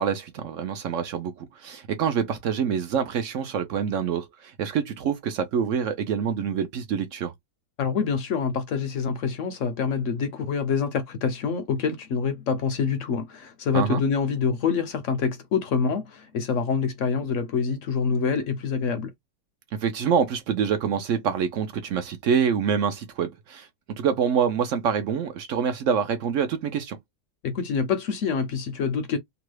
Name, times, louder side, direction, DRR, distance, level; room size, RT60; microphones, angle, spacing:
voice 1, 0.0-7.3 13.7-14.0 19.8-23.7 24.0-27.0, right 7 dB, 65° right, 0.9 m, -26 dB
voice 2, 7.8-19.1 27.4-29.2, left 5 dB, 65° left, 0.8 m, -26 dB
3.0 x 2.2 x 3.1 m
omnidirectional pair, 1.6 m